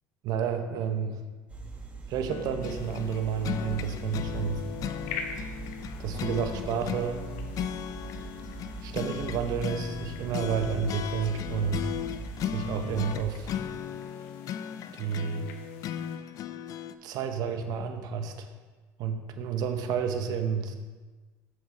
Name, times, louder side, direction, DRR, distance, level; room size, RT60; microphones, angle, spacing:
voice 1, 0.2-1.2 2.1-4.6 6.0-7.2 8.8-11.8 12.4-13.5 14.9-15.5 17.0-18.5 19.0-20.7, right 7 dB, 65° right, 7 dB, 0.9 m, -30 dB
sound 1, 1.5-13.6, right 3 dB, 15° right, 1.4 m, -42 dB
sound 2, 2.3-16.9, left 9 dB, 55° left, 0.4 m, -36 dB
sound 3, 2.6-16.2, left 5 dB, 85° left, 0.8 m, -48 dB
7.5 x 6.3 x 3.8 m, 1.3 s
supercardioid pair, 95°, 7 cm